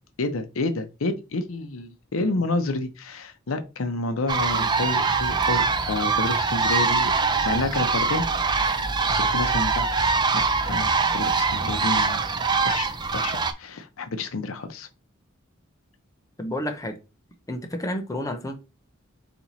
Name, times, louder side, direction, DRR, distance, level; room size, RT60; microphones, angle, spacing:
voice 1, 0.2-7.1 7.4-8.8 9.1-9.9 10.3-12.2 12.6-14.9, left 3 dB, 85° left, 0.6 m, -29 dB
sound 1, 4.3-13.5, right 4 dB, 20° right, 0.4 m, -23 dB
voice 2, 16.4-17.0 17.5-18.6, left 1 dB, 15° left, 0.6 m, -31 dB
4.3 x 2.9 x 4.0 m
head